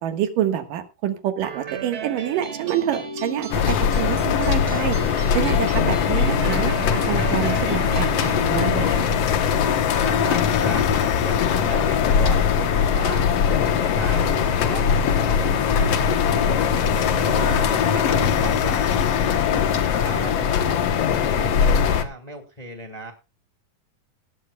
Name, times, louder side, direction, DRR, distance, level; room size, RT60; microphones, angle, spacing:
voice 1, 0.0-6.7 7.1-9.2, right 10 dB, 90° right, 8 dB, 3.1 m, -27 dB
sound 1, 1.4-8.4, right 6 dB, 40° right, 2.6 m, -35 dB
sound 2, 3.5-22.0, left 7 dB, 60° left, 1.9 m, -21 dB
sound 3, 6.8-18.3, left 2 dB, 35° left, 5.2 m, -37 dB
voice 2, 10.0-13.3 13.7-16.7 17.1-20.8 21.2-23.1, right 2 dB, 20° left, 5 dB, 1.3 m, -36 dB
18.0 x 12.5 x 2.3 m, 0.28 s
omnidirectional pair, 3.7 m